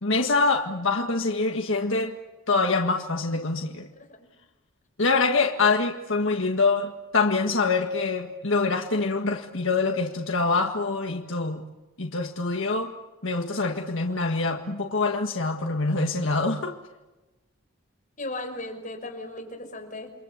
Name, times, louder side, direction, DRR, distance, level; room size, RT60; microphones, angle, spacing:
voice 1, 0.0-2.1 2.5-3.9 5.0-11.6 12.0-12.9 13.2-16.7, left 3 dB, 65° left, 3 dB, 1.8 m, -25 dB
voice 2, 18.2-20.1, left 2 dB, 35° left, 4 dB, 5.6 m, -36 dB
29.5 x 23.0 x 8.3 m, 1.1 s
head